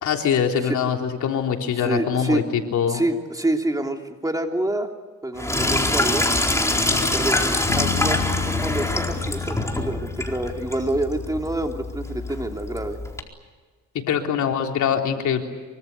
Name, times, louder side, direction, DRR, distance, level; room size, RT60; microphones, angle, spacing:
voice 1, 0.0-3.0 6.9-7.1 14.1-15.4, left 8 dB, 70° left, 2 dB, 3.6 m, -23 dB
voice 2, 1.8-2.4 2.9-4.9 5.2-6.3 7.1-13.0, right 1 dB, 10° right, 3 dB, 3.1 m, -27 dB
Sink (filling or washing), 5.4-13.2, left 1 dB, 10° left, 4.3 m, -25 dB
sound 1, 7.7-11.8, left 7 dB, 50° left, 2.8 m, -31 dB
25.0 x 24.5 x 8.4 m, 1.4 s
cardioid pair, 90°, 30 cm